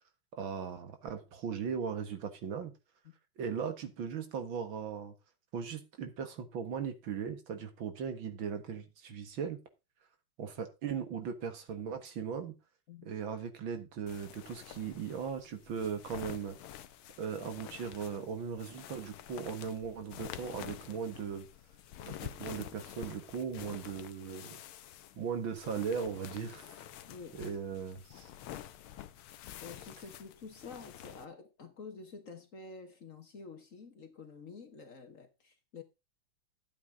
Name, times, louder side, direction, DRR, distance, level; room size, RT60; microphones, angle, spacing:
voice 1, 0.3-2.7 3.4-5.1 5.5-9.6 10.4-12.5 13.0-16.6 17.2-21.5 22.1-24.6 25.2-26.6 27.4-28.3, right 6 dB, 70° right, 2.3 m, -38 dB
voice 2, 12.9-13.2 27.1-27.4 29.6-35.8, left 4 dB, 45° left, 1.5 m, -49 dB
sound 1, 14.1-31.3, left 11 dB, 90° left, 1.7 m, -48 dB
12.0 x 8.7 x 3.7 m
omnidirectional pair, 2.3 m